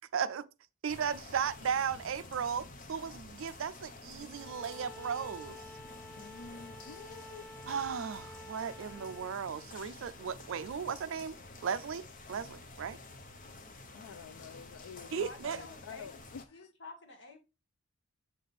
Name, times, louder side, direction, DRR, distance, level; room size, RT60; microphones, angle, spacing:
voice 1, 0.1-0.5 0.8-5.6 7.7-11.4 11.6-13.0 15.1-15.6, right 7 dB, 65° right, 0.4 m, -36 dB
sound 1, 0.9-16.5, left 2 dB, 35° left, 0.8 m, -50 dB
Bowed string instrument, 4.3-9.4, left 1 dB, 10° left, 0.5 m, -51 dB
voice 2, 6.2-7.5 13.9-16.7, left 6 dB, 85° left, 0.4 m, -49 dB
voice 3, 15.1-16.1 16.5-17.4, left 3 dB, 55° left, 1.8 m, -50 dB
7.5 x 4.1 x 3.5 m
head